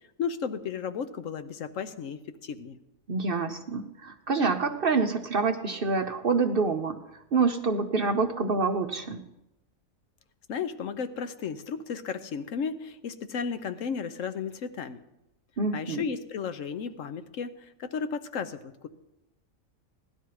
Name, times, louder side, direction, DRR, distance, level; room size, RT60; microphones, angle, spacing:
voice 1, 0.2-2.8 10.5-15.0 15.7-18.9, left 6 dB, 70° left, 10 dB, 1.1 m, -34 dB
voice 2, 3.1-7.0 7.3-9.2 15.6-16.1, right 4 dB, 50° right, 6 dB, 0.7 m, -27 dB
16.5 x 11.5 x 4.7 m, 0.91 s
omnidirectional pair, 1.4 m